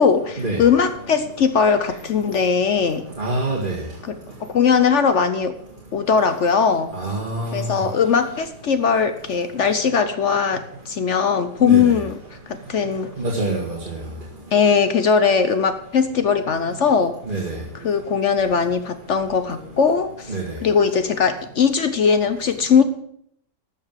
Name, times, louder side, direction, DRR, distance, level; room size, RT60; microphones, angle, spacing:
voice 1, 0.0-3.1 4.0-5.5 5.9-6.9 7.5-12.2 12.5-13.1 14.5-17.2 17.7-22.8, left 6 dB, 55° left, 10 dB, 0.8 m, -19 dB
voice 2, 3.2-3.8 6.9-7.7 11.6-11.9 13.2-14.0 17.3-17.6 20.3-20.4, right 2 dB, 30° right, -4 dB, 2.0 m, -25 dB
13.5 x 5.9 x 7.4 m, 0.68 s
omnidirectional pair, 1.9 m